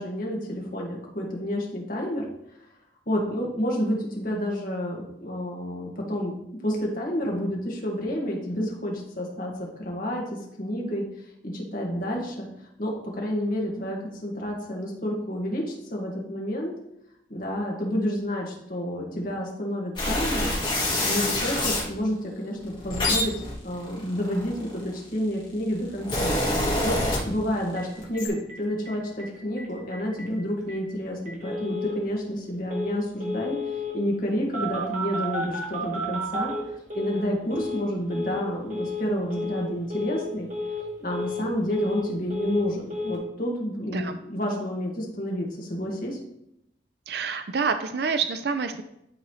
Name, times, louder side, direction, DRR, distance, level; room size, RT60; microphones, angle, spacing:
voice 1, 0.0-2.2 3.1-6.3 6.6-11.0 11.4-12.5 12.8-16.7 17.3-20.5 21.0-23.3 23.6-26.4 26.8-33.6 33.9-36.5 36.9-40.5 41.0-46.2, equal, 50° left, -1 dB, 1.7 m, -29 dB
sound 1, 20.0-21.9 22.6-25.0 25.7-27.7 28.0-28.3, left 1 dB, 25° left, 2.0 m, -26 dB
Telephone, 27.8-27.9 28.1-28.2 28.5-28.6 28.9-29.3 29.6-29.7 29.9-30.3 30.7-30.8 31.3-31.9 32.7-32.9 33.2-33.9 34.5-37.2 37.5-37.8 38.1-38.4 38.7-39.0 39.3-39.6 39.9-40.2 40.5-40.8 41.1-42.0 42.3-42.6 42.9-43.2, left 1 dB, 40° right, 1.8 m, -32 dB
voice 2, 47.1-48.8, right 5 dB, 60° right, 8 dB, 0.4 m, -27 dB
12.0 x 4.1 x 3.2 m, 0.80 s
head